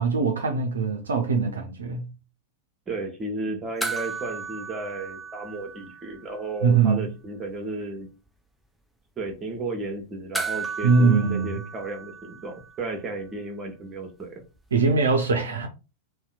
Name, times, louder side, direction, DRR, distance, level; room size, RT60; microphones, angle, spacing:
voice 1, 0.0-2.1 6.6-7.1 10.8-11.6 14.7-15.7, right 4 dB, 70° right, 0.4 m, -22 dB
voice 2, 2.9-8.1 9.2-14.4, right 2 dB, 25° right, 0.8 m, -34 dB
sound 1, 3.8-6.5 6.7-6.8 10.3-12.9 15.1-15.2, right 4 dB, ahead, 0.3 m, -35 dB
2.7 x 2.1 x 2.4 m
figure-of-eight pair, 90°, 0 cm